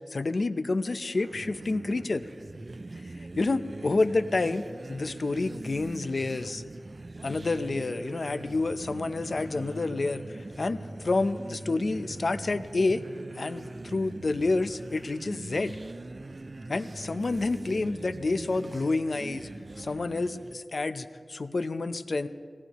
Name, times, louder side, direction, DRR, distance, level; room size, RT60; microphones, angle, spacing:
voice 1, 0.1-2.2 3.4-6.6 7.2-13.0 13.4-15.8 16.7-19.5 19.8-22.3, left 3 dB, 70° left, 10 dB, 0.6 m, -29 dB
sound 1, 1.1-20.6, right 2 dB, 55° right, 0.4 m, -42 dB
22.5 x 18.0 x 3.0 m, 2.1 s
wide cardioid pair, 55°, 0 cm